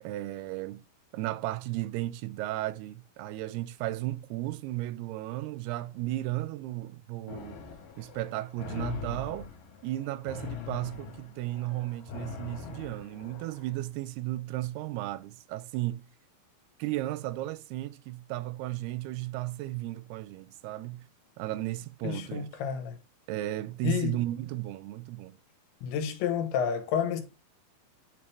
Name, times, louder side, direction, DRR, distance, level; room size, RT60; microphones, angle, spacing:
voice 1, 0.0-0.8 1.1-7.6 8.0-9.5 9.8-16.1 16.8-21.1 21.4-22.5 23.3-25.4, right 16 dB, 90° right, 2.6 m, -34 dB
sound 1, 7.3-13.7, left 7 dB, 65° left, 2.9 m, -42 dB
voice 2, 22.0-23.0 23.8-24.2 25.8-27.2, left 8 dB, 80° left, 3.0 m, -30 dB
9.6 x 4.3 x 3.2 m
omnidirectional pair, 4.6 m